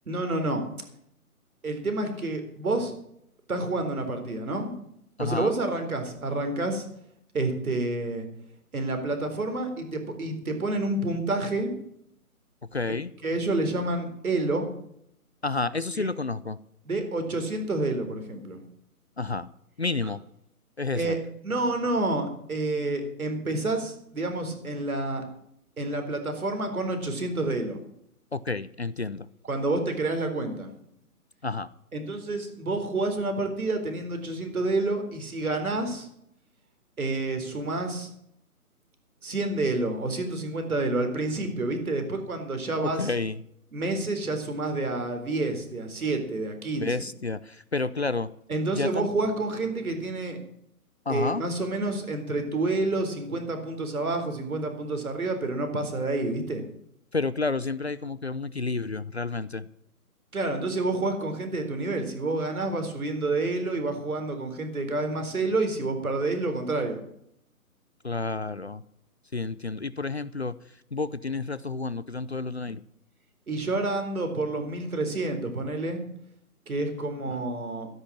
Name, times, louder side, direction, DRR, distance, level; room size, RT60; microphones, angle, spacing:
voice 1, 0.1-0.7 1.6-2.9 3.5-4.8 5.2-6.9 7.3-8.3 8.7-11.7 13.2-14.7 15.9-16.1 16.9-18.6 20.9-21.2 21.4-25.2 25.8-27.8 29.5-30.7 31.9-36.1 37.0-38.1 39.2-43.1 43.7-46.9 48.5-50.4 51.1-56.6 60.3-67.0 73.5-76.0 76.7-77.9, right 2 dB, 70° right, 6 dB, 4.1 m, -29 dB
voice 2, 5.2-5.5 12.7-13.1 15.4-16.6 19.2-19.5 19.8-20.2 20.8-21.1 28.3-29.3 31.4-31.7 42.8-43.4 46.8-48.3 48.7-49.1 51.1-51.4 57.1-59.7 68.0-68.8 69.3-70.6 70.9-72.8 77.3-77.4, left 3 dB, 45° left, 16 dB, 0.5 m, -30 dB
13.5 x 10.0 x 7.1 m, 0.73 s
hypercardioid pair, 180°, 45 cm